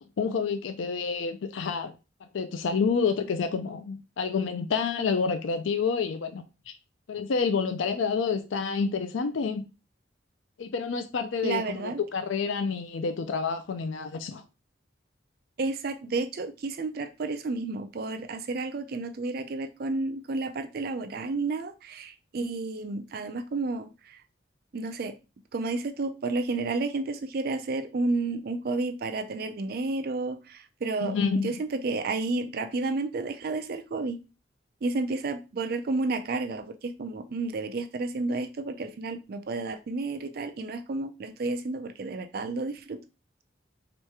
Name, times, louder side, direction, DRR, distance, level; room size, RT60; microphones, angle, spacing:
voice 1, 0.2-1.9 2.3-6.7 7.1-9.6 10.6-14.4 31.0-31.6, left 5 dB, 90° left, 0.4 m, -28 dB
voice 2, 11.4-12.0 15.6-24.2 24.7-25.2 25.5-34.2 34.8-43.0, right 3 dB, 55° right, 0.4 m, -31 dB
3.2 x 3.0 x 4.6 m
head